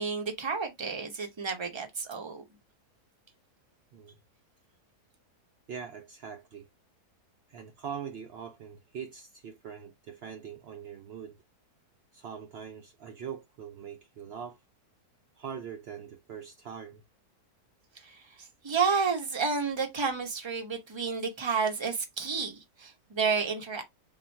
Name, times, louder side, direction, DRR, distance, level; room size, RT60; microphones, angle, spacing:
voice 1, 0.0-2.4 18.0-18.2 18.6-23.8, right 5 dB, 25° right, 0.7 m, -30 dB
voice 2, 5.7-6.7 7.5-11.4 12.1-14.6 15.4-17.0, right 7 dB, 75° right, 0.5 m, -42 dB
3.7 x 2.4 x 4.3 m
omnidirectional pair, 1.7 m